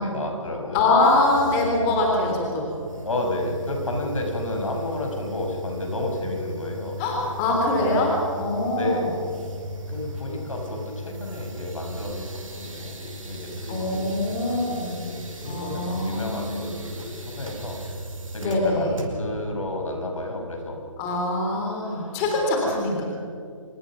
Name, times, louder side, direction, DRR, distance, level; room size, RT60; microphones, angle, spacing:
voice 1, 0.0-0.9 3.0-7.3 8.7-9.1 9.9-14.5 15.0-17.8 18.3-20.8 22.0-22.1, left 1 dB, 75° left, 2 dB, 6.2 m, -31 dB
voice 2, 0.7-2.7 7.0-9.0 13.7-15.0 15.4-16.5 18.4-19.0 21.0-23.0, left 2 dB, 20° left, 0 dB, 3.6 m, -23 dB
sound 1, 1.0-19.5, right 1 dB, 80° right, 5.3 m, -37 dB
27.0 x 21.5 x 6.1 m, 2.5 s
figure-of-eight pair, 155°, 17 cm